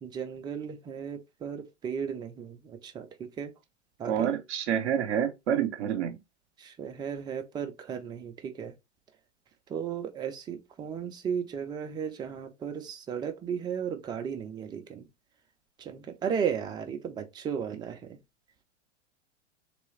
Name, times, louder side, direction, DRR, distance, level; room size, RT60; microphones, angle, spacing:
voice 1, 0.0-3.5 4.0-4.3 6.6-8.7 9.7-15.1 15.8-18.2, right 7 dB, 10° right, 0.4 m, -35 dB
voice 2, 4.0-6.2, right 9 dB, 65° right, 0.7 m, -28 dB
3.2 x 3.0 x 3.1 m
figure-of-eight pair, 90°, 37 cm